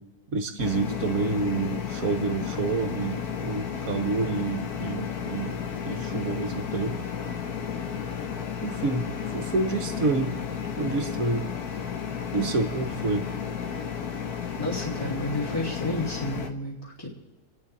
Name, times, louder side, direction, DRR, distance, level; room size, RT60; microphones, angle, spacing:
voice 1, 0.3-5.6 5.9-7.0 8.6-9.1 9.3-10.3 10.8-11.5 12.3-13.3, right 3 dB, 60° right, 6 dB, 1.9 m, -28 dB
sound 1, 0.6-16.5, left 7 dB, 70° left, 1.7 m, -33 dB
voice 2, 14.6-17.1, left 1 dB, 15° left, -7 dB, 2.4 m, -31 dB
28.0 x 10.5 x 4.3 m, 1.2 s
omnidirectional pair, 1.7 m